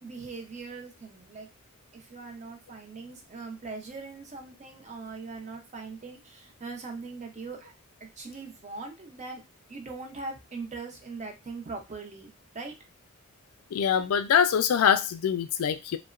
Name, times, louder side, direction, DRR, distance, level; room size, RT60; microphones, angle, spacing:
voice 1, 0.0-1.5 1.9-7.7 8.0-9.4 9.7-12.7, right 4 dB, 35° right, 0.5 m, -41 dB
voice 2, 13.7-16.0, left 8 dB, 85° left, 0.3 m, -24 dB
2.8 x 2.1 x 2.4 m
head